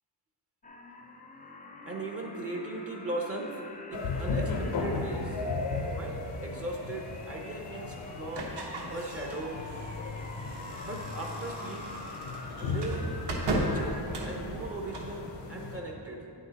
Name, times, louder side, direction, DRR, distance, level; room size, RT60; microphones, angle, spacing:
sound 1, 0.6-14.0, left 2 dB, 20° left, 0.5 m, -45 dB
voice 1, 1.8-3.6 3.9-5.5 5.9-8.6 8.9-9.7 10.8-11.9 12.6-13.2 13.5-16.3, right 2 dB, 35° right, 0 dB, 0.7 m, -38 dB
sound 2, 3.9-15.8, left 3 dB, 90° left, 0.9 m, -36 dB
sound 3, 8.3-15.2, right 1 dB, 70° right, 1.2 m, -37 dB
9.2 x 6.4 x 4.0 m, 2.6 s
wide cardioid pair, 175°, 42 cm